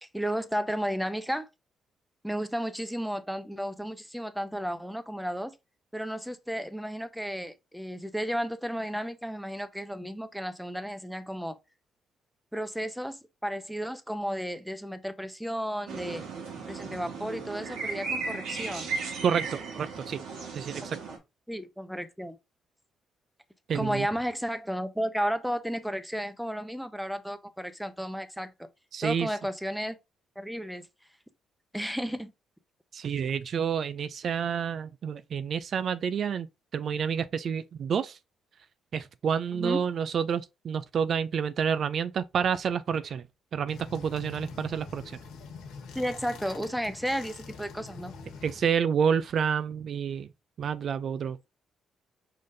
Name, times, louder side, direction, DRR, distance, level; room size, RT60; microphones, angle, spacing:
voice 1, 0.0-1.5 2.2-5.5 5.9-11.6 12.5-16.3 16.7-18.9 21.5-22.4 23.7-28.5 29.0-30.0 30.4-30.8 31.7-32.3 39.5-39.8 45.9-48.1, equal, ahead, 0.7 m, -33 dB
sound 1, 15.9-21.2, right 4 dB, 85° right, 1.6 m, -36 dB
voice 2, 19.2-20.2 20.5-21.0 23.7-24.1 28.9-29.3 32.9-36.5 36.7-38.2 38.9-43.2 43.5-45.0 48.4-50.3 50.6-51.4, right 7 dB, 55° right, 0.3 m, -29 dB
sound 2, 43.7-48.8, left 4 dB, 90° left, 1.3 m, -45 dB
5.0 x 3.7 x 2.6 m
cardioid pair, 90°, 0 cm